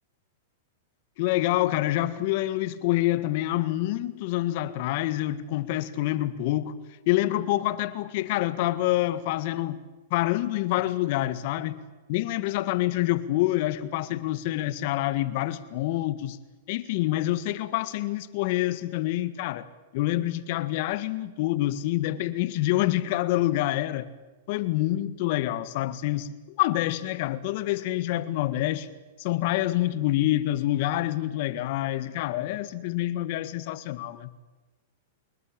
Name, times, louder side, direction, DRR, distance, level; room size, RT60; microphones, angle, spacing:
voice 1, 1.2-6.8 7.1-9.8 10.1-11.8 12.1-16.4 16.7-19.7 19.9-24.1 24.5-28.9 29.2-34.3, left 15 dB, 55° left, 1.7 m, -27 dB
26.0 x 21.5 x 8.9 m
hypercardioid pair, 120°, 0 cm